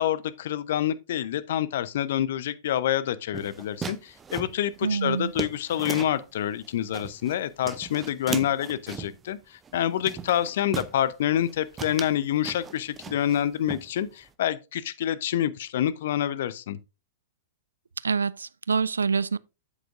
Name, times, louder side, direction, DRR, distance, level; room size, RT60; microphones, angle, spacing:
voice 1, 0.0-16.8, left 11 dB, 60° left, 0.7 m, -27 dB
sound 1, 3.3-6.2 6.6-7.4 7.6-9.2 9.6-9.8 10.1-11.0 11.4-11.5 11.8-13.4 13.7-14.3, right 6 dB, 20° right, 0.6 m, -37 dB
voice 2, 4.8-5.3 18.0-19.4, right 5 dB, 80° right, 0.3 m, -26 dB
8.2 x 7.7 x 2.5 m
figure-of-eight pair, 105°, 0 cm